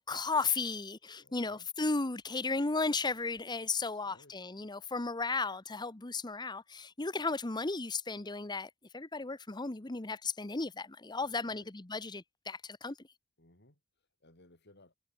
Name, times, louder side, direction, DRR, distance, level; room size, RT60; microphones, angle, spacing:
voice 1, 0.0-13.0, left 3 dB, 20° left, 0.9 m, -35 dB
voice 2, 1.2-1.7 3.9-4.4 11.2-11.7 13.4-14.9, left 2 dB, 50° left, 6.1 m, -62 dB
head